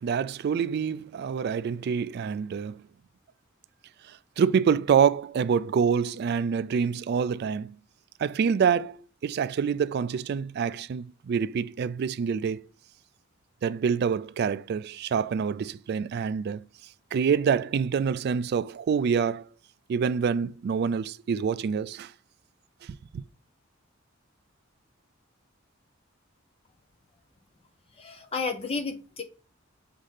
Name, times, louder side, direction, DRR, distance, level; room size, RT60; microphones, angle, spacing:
voice 1, 0.0-2.8 4.1-7.7 8.2-12.6 13.6-16.6 17.1-19.5 19.9-22.1 22.9-23.2, right 6 dB, 55° right, 0.3 m, -26 dB
voice 2, 28.0-29.2, left 4 dB, 30° left, 0.6 m, -32 dB
5.2 x 3.3 x 5.6 m
head